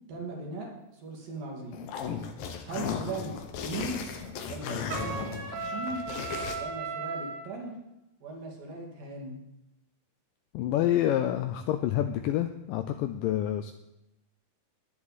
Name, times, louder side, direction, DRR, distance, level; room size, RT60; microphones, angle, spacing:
voice 1, 0.1-0.7 1.0-1.8 2.6-3.3 3.6-4.1 4.4-5.3 5.6-6.0 6.5-7.7 8.2-9.4, right 3 dB, 65° right, -1 dB, 3.9 m, -38 dB
sound 1, 1.7-6.6, left 6 dB, 70° left, 2.7 m, -36 dB
Trumpet, 4.9-7.4, right 4 dB, 85° right, 3.6 m, -36 dB
voice 2, 10.5-13.7, left 12 dB, 90° left, 8 dB, 1.9 m, -28 dB
14.5 x 10.5 x 4.2 m, 0.90 s
omnidirectional pair, 4.4 m